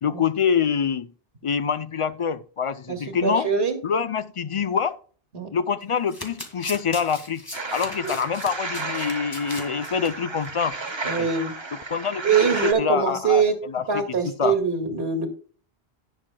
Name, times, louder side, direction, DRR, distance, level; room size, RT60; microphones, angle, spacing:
voice 1, 0.0-1.1 1.4-3.5 3.8-5.0 5.5-7.4 7.7-10.8 11.2-11.3 11.7-12.2 12.8-14.6, left 6 dB, 50° left, 0.4 m, -25 dB
voice 2, 2.9-3.8 5.3-5.5 8.0-8.1 11.0-11.5 12.2-13.6 13.9-15.3, right 5 dB, 70° right, 2.3 m, -23 dB
Domestic sounds home sounds, 5.8-10.1 10.4-10.6 10.9-11.0, left 1 dB, 20° left, 1.7 m, -38 dB
sound 1, 7.5-12.7, right 3 dB, 30° right, 0.9 m, -33 dB
18.0 x 6.4 x 2.2 m
omnidirectional pair, 1.1 m